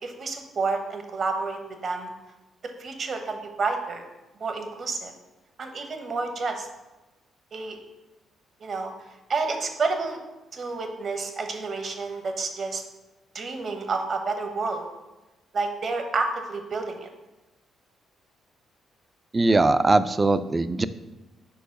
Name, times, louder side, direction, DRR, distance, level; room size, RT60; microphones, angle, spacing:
voice 1, 0.0-2.1 2.8-4.0 4.4-5.1 5.6-6.7 7.5-7.8 8.6-8.9 9.3-10.2 10.5-12.8 13.3-14.9 15.5-17.1, right 4 dB, 50° right, 5 dB, 0.9 m, -29 dB
voice 2, 19.3-20.8, right 2 dB, 25° right, 13 dB, 0.3 m, -20 dB
4.7 x 4.6 x 5.1 m, 1.1 s
cardioid pair, 90°, 0 cm